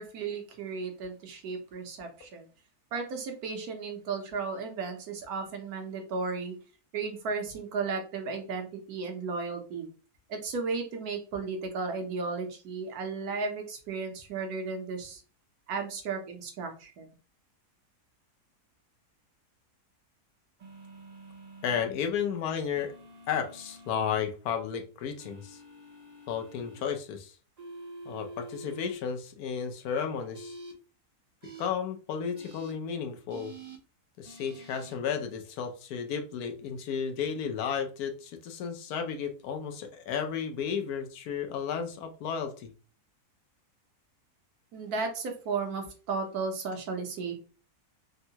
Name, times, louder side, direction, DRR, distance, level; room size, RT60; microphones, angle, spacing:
voice 1, 0.0-2.4 2.9-6.6 6.9-9.9 10.3-15.2 15.7-17.1 44.7-47.3, right 4 dB, 75° right, 4 dB, 1.2 m, -34 dB
sound 1, 20.6-21.8 22.7-24.3 25.2-26.8 27.6-28.9 30.3-30.7 31.4-31.7 32.4-32.7 33.3-33.8 34.3-34.9, right 2 dB, 50° right, 0.5 m, -47 dB
voice 2, 21.6-22.9 23.3-25.6 26.3-27.3 28.1-30.5 31.6-33.5 34.2-42.7, left 7 dB, 75° left, 5 dB, 1.1 m, -33 dB
3.5 x 2.1 x 2.8 m, 0.36 s
omnidirectional pair, 1.7 m